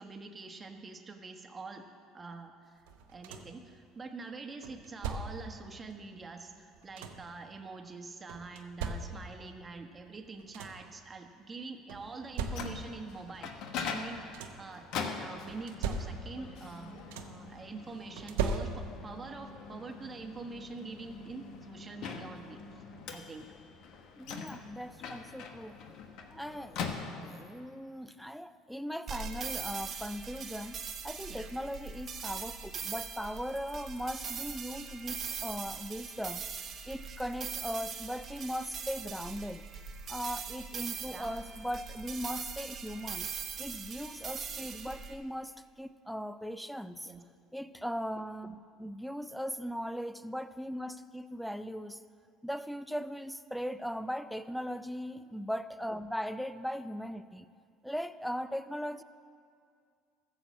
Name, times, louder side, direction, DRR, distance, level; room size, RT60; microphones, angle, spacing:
voice 1, 0.0-1.8 2.1-2.8 3.1-13.5 13.8-16.9 17.2-22.8 23.1-23.5 31.3-31.5 41.1-41.3 42.4-42.5 47.0-47.2, right 3 dB, 25° right, 5 dB, 1.3 m, -45 dB
sound 1, 2.9-3.7 4.6-5.6 6.5-7.4 8.3-9.5 10.1-10.2 10.4-11.0 11.9-13.0 14.0-14.8 15.5-16.5 16.8-17.5 18.2-19.2 20.5-20.6 21.1-21.3, right 5 dB, 85° right, 0.9 m, -38 dB
Microwave oven, 12.2-27.6, left 5 dB, 65° left, 1.1 m, -43 dB
voice 2, 24.2-25.8 26.3-26.8 27.2-30.8 31.0-36.5 36.9-39.6 40.1-43.3 43.6-47.1 47.5-52.0 52.4-57.5 57.8-59.0, equal, ahead, 13 dB, 0.5 m, -39 dB
sound 2, 29.1-45.1, right 6 dB, 45° right, 1.1 m, -41 dB
14.0 x 7.1 x 7.3 m, 2.2 s
supercardioid pair, 85°, 0 cm